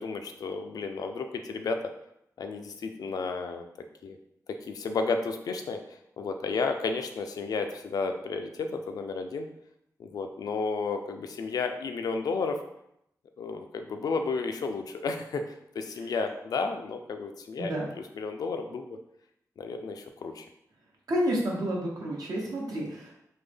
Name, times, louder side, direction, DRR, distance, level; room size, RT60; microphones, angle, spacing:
voice 1, 0.0-1.8 2.4-3.7 4.0-4.2 4.5-5.8 6.2-9.5 10.0-12.6 13.4-15.4 15.7-19.0 19.6-20.5, left 4 dB, 80° left, 6 dB, 0.3 m, -32 dB
voice 2, 21.1-23.1, equal, 75° right, -3 dB, 0.9 m, -30 dB
3.5 x 2.1 x 3.3 m, 0.78 s
wide cardioid pair, 105°, 6 cm